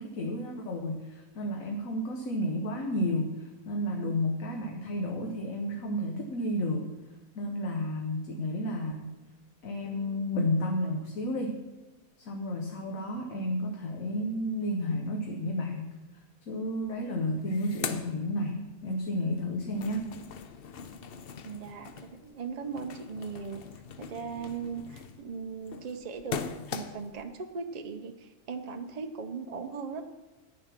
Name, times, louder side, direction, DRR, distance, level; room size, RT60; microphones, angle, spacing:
voice 1, 0.0-6.9 7.3-9.2 9.6-11.6 12.2-20.1, left 1 dB, 75° left, 3 dB, 1.4 m, -32 dB
sound 1, 16.8-16.9 17.2-19.0 19.3-27.2, left 7 dB, 55° left, 0.7 m, -41 dB
voice 2, 21.4-23.6 24.0-26.4 26.7-30.0, right 5 dB, 55° right, 6 dB, 0.4 m, -38 dB
9.2 x 8.9 x 5.9 m, 1.1 s
omnidirectional pair, 1.4 m